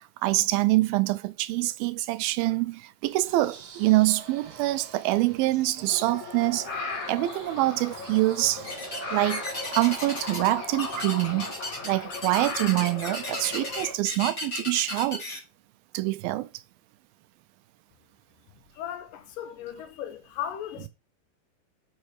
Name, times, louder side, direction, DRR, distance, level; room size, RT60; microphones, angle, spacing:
voice 1, 0.0-6.7 7.1-8.6 9.1-11.5 11.8-15.2 15.9-16.5, right 18 dB, 85° right, 2.4 m, -25 dB
sound 1, 3.0-11.8, right 5 dB, 55° right, 1.5 m, -46 dB
sound 2, 5.9-13.9, left 3 dB, 50° left, 2.9 m, -37 dB
sound 3, 8.6-9.0 9.3-10.5 10.8-15.4, left 2 dB, 20° left, 2.3 m, -35 dB
voice 2, 18.7-20.9, left 10 dB, 75° left, 2.3 m, -36 dB
6.4 x 5.6 x 4.8 m
omnidirectional pair, 4.2 m